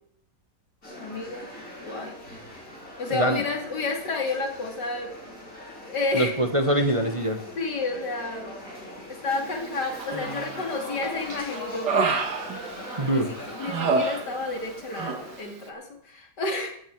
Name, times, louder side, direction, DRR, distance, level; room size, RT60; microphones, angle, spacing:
sound 1, 0.8-15.4, equal, 50° left, 6.4 m, -41 dB
voice 1, 0.9-1.5 1.8-2.1 3.0-5.1 5.9-6.3 7.6-8.5 9.1-11.9 13.1-13.2 13.6-16.7, left 3 dB, 80° left, 3 dB, 3.2 m, -30 dB
voice 2, 3.1-3.4 6.1-7.4 13.0-13.5, right 1 dB, 20° right, 6 dB, 1.1 m, -24 dB
Human voice, 10.0-10.6 11.0-13.2 13.6-14.7 14.9-15.2, right 4 dB, 80° right, 2.2 m, -28 dB
15.5 x 14.5 x 4.7 m, 0.68 s
omnidirectional pair, 1.8 m